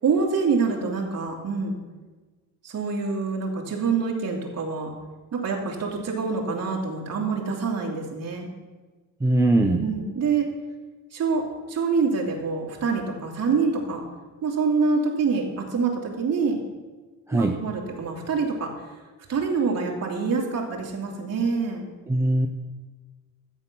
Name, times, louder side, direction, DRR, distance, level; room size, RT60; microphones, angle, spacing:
voice 1, 0.0-1.8 2.6-4.9 5.3-8.5 9.8-10.5 11.1-14.0 14.4-16.6 17.3-18.7 19.3-21.9, right 5 dB, 45° right, -2 dB, 2.7 m, -26 dB
voice 2, 9.2-9.9 17.3-17.6 22.1-22.5, right 2 dB, 10° right, 2 dB, 0.5 m, -21 dB
13.5 x 8.3 x 6.1 m, 1.3 s
cardioid pair, 175°, 35 cm